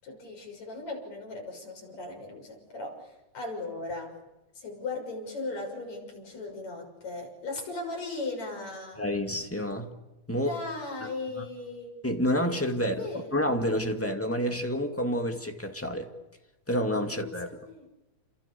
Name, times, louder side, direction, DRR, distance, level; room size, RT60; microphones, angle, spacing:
voice 1, 0.0-4.1 4.6-9.0 10.3-11.9 12.8-13.4 17.1-17.9, left 3 dB, 65° left, 7.6 m, -38 dB
voice 2, 9.0-9.9 10.3-10.5 11.0-11.1 12.0-13.1 13.3-16.1 16.7-17.5, equal, 5° left, 1.6 m, -28 dB
29.5 x 27.5 x 7.1 m
omnidirectional pair, 3.4 m